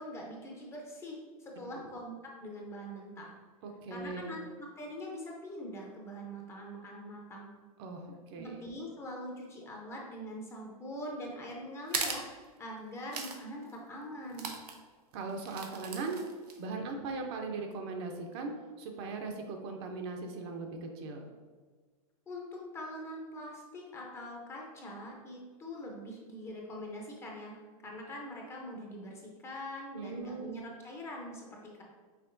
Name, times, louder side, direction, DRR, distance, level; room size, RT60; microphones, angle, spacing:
voice 1, 0.0-3.3 3.9-7.5 8.4-12.3 12.6-14.6 22.3-31.8, equal, 15° left, -1 dB, 0.6 m, -43 dB
voice 2, 1.5-1.9 3.6-4.4 7.8-8.6 15.1-16.2 16.6-21.2 29.9-30.6, right 3 dB, 45° right, 3 dB, 0.6 m, -39 dB
sound 1, 11.9-12.2 13.1-13.4 13.7-13.8 14.3-14.8 15.4-16.6, right 5 dB, 90° right, 0.7 m, -37 dB
5.7 x 3.5 x 2.6 m, 1.5 s
hypercardioid pair, 140°, 20 cm